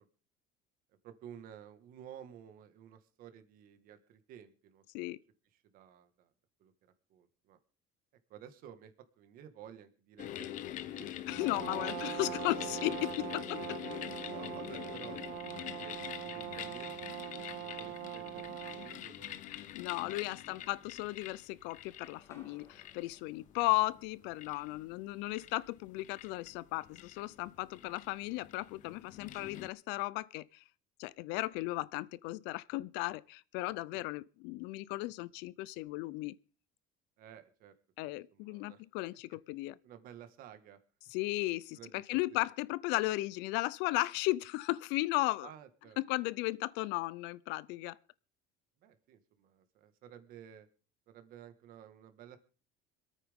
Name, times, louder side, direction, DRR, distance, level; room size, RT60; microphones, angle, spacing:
voice 1, 1.0-4.8 5.5-6.3 6.6-6.7 7.1-7.6 8.3-10.5 10.8-11.3 11.9-12.2 14.3-18.5 18.7-19.5 20.0-20.7 33.9-34.1 37.2-37.7 38.0-38.8 39.8-40.8 41.7-42.5 45.4-46.0 48.8-50.7 51.1-52.4, right 9 dB, 50° right, 1.7 m, -53 dB
sound 1, 10.2-29.7, left 12 dB, 45° left, 0.8 m, -45 dB
voice 2, 11.3-13.8 19.7-30.6 31.0-36.4 38.0-39.8 41.1-45.5 46.0-48.0, left 20 dB, 75° left, 0.6 m, -35 dB
Brass instrument, 11.3-19.0, right 14 dB, 90° right, 1.1 m, -42 dB
sound 2, 21.7-25.5, left 3 dB, 15° left, 2.5 m, -65 dB
26.5 x 9.2 x 3.6 m
cardioid pair, 165°, 18 cm